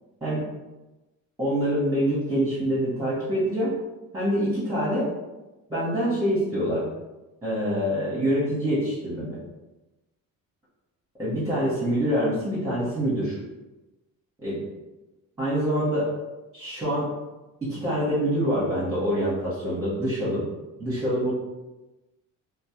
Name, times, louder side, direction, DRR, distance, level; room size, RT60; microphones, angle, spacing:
voice 1, 1.4-3.7 4.1-5.1 5.7-6.9 7.4-9.4 11.2-13.4 14.4-14.6 15.4-16.1 16.5-17.1 17.6-20.4 20.8-21.3, equal, 10° right, -9 dB, 0.9 m, -25 dB
2.2 x 2.0 x 2.9 m, 1.1 s
cardioid pair, 100°, 35 cm